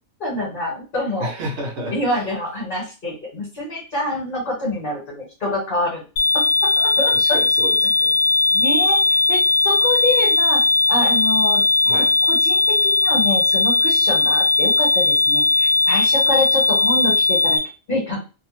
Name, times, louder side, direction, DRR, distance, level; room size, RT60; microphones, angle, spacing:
voice 1, 0.2-1.3 1.9-6.0 6.8-7.1 7.8-7.9 8.5-10.6 10.9-17.6 17.9-18.2, left 1 dB, 40° left, -5 dB, 1.2 m, -26 dB
voice 2, 1.2-2.2 7.1-8.2 11.8-12.1, right 1 dB, 55° right, 1 dB, 0.9 m, -31 dB
sound 1, 6.2-17.6, left 3 dB, 85° left, 1.0 m, -18 dB
2.6 x 2.1 x 3.1 m, 0.32 s
omnidirectional pair, 1.5 m